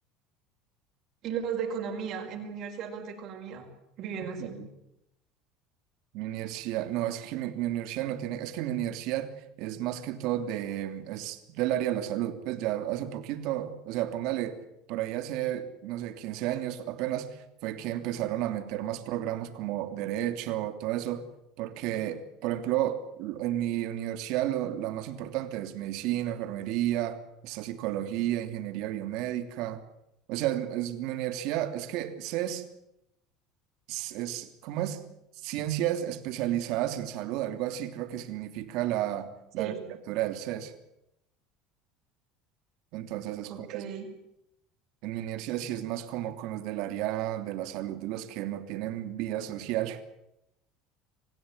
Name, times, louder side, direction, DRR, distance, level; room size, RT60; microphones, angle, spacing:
voice 1, 1.2-3.7 4.0-4.6 39.6-39.8 43.5-44.1, right 7 dB, 45° right, 3 dB, 5.0 m, -35 dB
voice 2, 6.1-9.3 9.6-14.6 14.9-17.4 17.6-21.2 21.6-27.2 27.4-29.8 30.3-32.7 33.9-35.0 35.4-39.3 39.5-39.7 40.1-40.7 42.9-43.8 45.0-50.0, right 13 dB, 65° right, 8 dB, 3.0 m, -32 dB
26.5 x 16.0 x 9.9 m, 0.84 s
cardioid pair, 145°, 0 cm